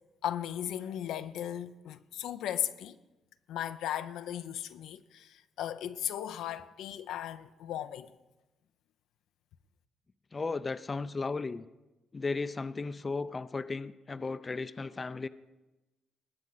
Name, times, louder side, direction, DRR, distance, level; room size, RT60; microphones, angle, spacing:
voice 1, 0.2-2.9 3.5-8.1, left 10 dB, 85° left, 0.5 m, -36 dB
voice 2, 10.3-11.6 12.1-15.3, left 4 dB, 30° left, 0.4 m, -35 dB
20.0 x 8.3 x 4.0 m
cardioid pair, 90°, 0 cm